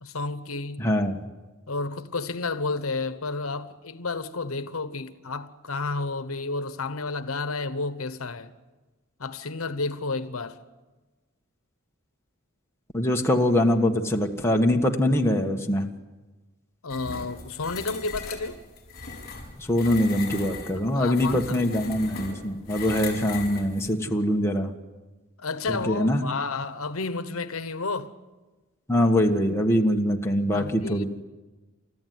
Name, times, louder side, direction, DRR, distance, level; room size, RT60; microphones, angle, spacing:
voice 1, 0.0-0.9 1.7-8.5 9.2-10.6 16.8-18.6 20.9-21.5 25.4-28.1 30.5-31.0, left 3 dB, 80° left, 1.1 m, -31 dB
voice 2, 0.8-1.2 12.9-15.9 19.6-24.7 25.7-26.2 28.9-31.0, left 1 dB, 10° left, 1.6 m, -23 dB
sound 1, 16.9-23.9, left 4 dB, 45° left, 5.1 m, -39 dB
30.0 x 14.0 x 9.5 m
head